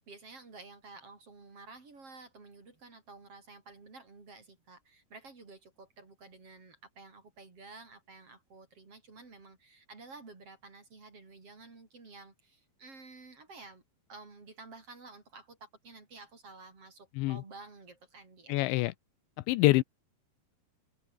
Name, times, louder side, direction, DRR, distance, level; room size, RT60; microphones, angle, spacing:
voice 1, 0.0-13.8 14.1-18.9, right 3 dB, 30° right, 5.1 m, -52 dB
voice 2, 18.5-18.9 19.5-19.8, left 19 dB, 80° left, 3.0 m, -25 dB
omnidirectional pair, 5.3 m